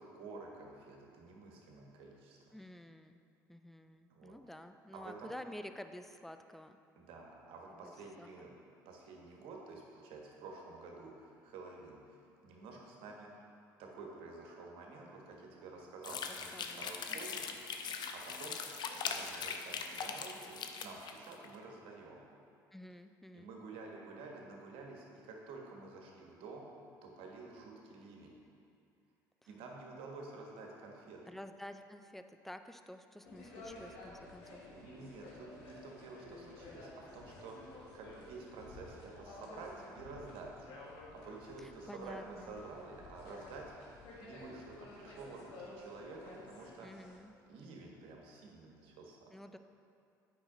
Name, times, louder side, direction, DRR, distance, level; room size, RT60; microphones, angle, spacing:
voice 1, 0.0-2.4 4.1-4.3 4.9-5.3 7.0-8.5 8.8-12.2 12.4-13.5 13.8-17.5 17.8-18.6 19.0-22.2 23.3-26.7 27.0-28.4 29.5-31.2 34.7-46.9 47.5-49.3, right 3 dB, 60° right, 0 dB, 1.3 m, -50 dB
voice 2, 2.5-3.2 3.5-6.8 7.8-7.9 8.2-8.6 16.1-17.2 22.7-23.5 29.4-29.5 31.3-34.7 41.6-42.6 46.8-47.3 49.3-49.6, left 1 dB, 5° left, 9 dB, 0.4 m, -50 dB
sound 1, 16.0-21.5, left 6 dB, 45° left, 0.6 m, -41 dB
sound 2, 33.2-47.2, left 2 dB, 65° left, 1.5 m, -53 dB
8.6 x 5.6 x 3.8 m, 2.4 s
hypercardioid pair, 60°, 10 cm